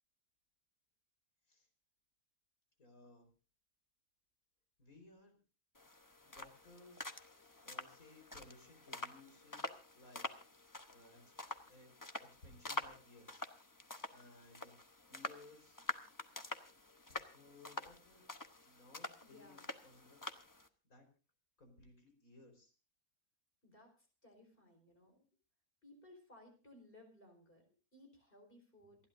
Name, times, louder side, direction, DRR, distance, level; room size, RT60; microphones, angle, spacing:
voice 1, 2.8-3.3 4.8-5.4 6.2-9.7 9.9-10.3 10.9-11.3 11.7-13.4 14.1-14.7 15.1-15.8 17.3-18.4 18.6-20.2 20.8-21.1 21.6-22.7, left 2 dB, 80° left, 5 dB, 4.9 m, -61 dB
sound 1, 5.8-20.7, left 2 dB, 15° left, 0.8 m, -47 dB
voice 2, 19.2-19.7 23.6-25.2 25.8-27.6 27.9-29.0, left 1 dB, 40° left, 4 dB, 4.9 m, -61 dB
28.0 x 11.5 x 2.6 m, 0.35 s
omnidirectional pair, 1.5 m